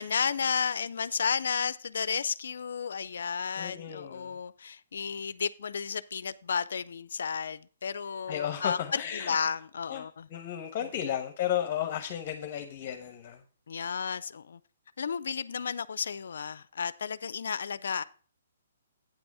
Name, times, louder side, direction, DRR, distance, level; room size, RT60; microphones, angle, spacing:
voice 1, 0.0-10.3 13.7-14.6 15.0-18.0, left 6 dB, 75° left, 0.4 m, -32 dB
voice 2, 3.5-4.4 8.3-9.4 9.9-10.0 10.3-13.4, left 10 dB, 35° left, 0.9 m, -34 dB
8.9 x 6.1 x 4.7 m
hypercardioid pair, 150°, 0 cm